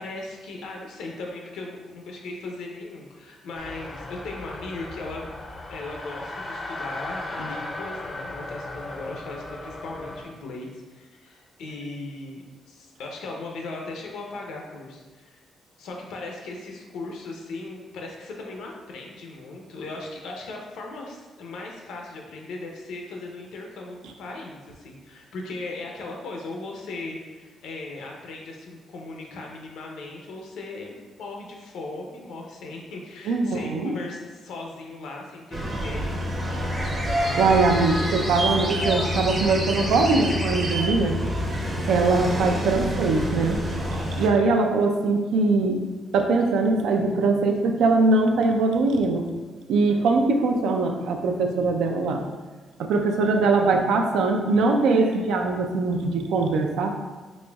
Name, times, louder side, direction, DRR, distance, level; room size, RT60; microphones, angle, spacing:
voice 1, 0.0-5.3 5.7-15.4 15.8-36.2, left 2 dB, 90° left, 0 dB, 0.6 m, -38 dB
sound 1, 3.6-10.2, left 2 dB, 30° left, 0.4 m, -36 dB
voice 2, 33.3-33.9 37.4-41.2 41.9-43.6 44.2-45.8 46.1-49.3 49.7-52.2 52.8-56.9, right 3 dB, 90° right, 3 dB, 0.4 m, -22 dB
sound 2, 35.5-44.3, equal, 30° right, 0.6 m, -27 dB
4.1 x 3.0 x 2.3 m, 1.3 s
cardioid pair, 110°, 0 cm